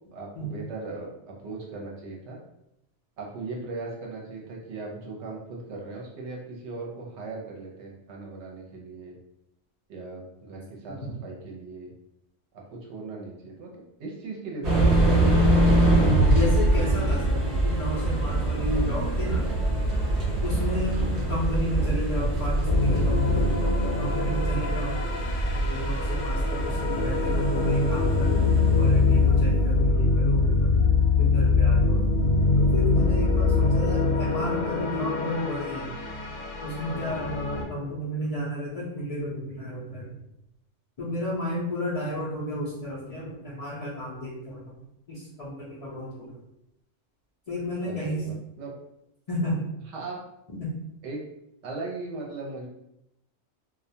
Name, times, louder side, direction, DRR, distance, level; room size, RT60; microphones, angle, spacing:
voice 1, 0.1-2.4 3.2-9.2 9.9-11.9 12.5-15.4 47.8-48.7 49.9-50.2 51.0-51.2 51.6-52.7, right 3 dB, 70° right, -2 dB, 0.8 m, -38 dB
sound 1, 14.6-29.1, right 1 dB, 40° right, 0.7 m, -24 dB
voice 2, 16.3-19.4 20.4-21.0 21.3-23.6 24.0-24.9 25.6-32.0 32.6-36.0 36.6-37.3 37.7-40.1 41.0-44.7 45.1-46.4 47.5-48.2 49.3-49.7 50.5-50.7, left 1 dB, 60° left, -8 dB, 0.3 m, -33 dB
sound 2, 22.6-37.6, left 3 dB, 80° left, 0.9 m, -23 dB
2.3 x 2.1 x 2.6 m, 0.84 s
omnidirectional pair, 1.3 m